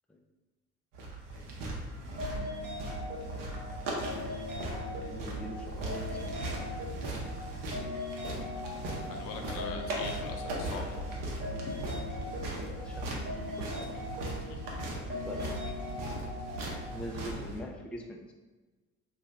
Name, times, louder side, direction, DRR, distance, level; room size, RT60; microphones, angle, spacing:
sound 1, 0.9-17.6, right 1 dB, 70° right, 0.8 m, -38 dB
sound 2, 2.2-16.9, left 2 dB, 30° right, 1.1 m, -41 dB
voice 1, 4.9-6.3 9.4-10.1 12.6-13.9 14.8-15.5 16.9-18.3, left 1 dB, 5° left, 2 dB, 0.3 m, -43 dB
voice 2, 8.9-11.0 11.6-11.7 14.5-14.8 15.4-15.5, left 6 dB, 80° left, 3 dB, 0.5 m, -43 dB
2.7 x 2.4 x 3.3 m, 1.2 s
supercardioid pair, 65°, 34 cm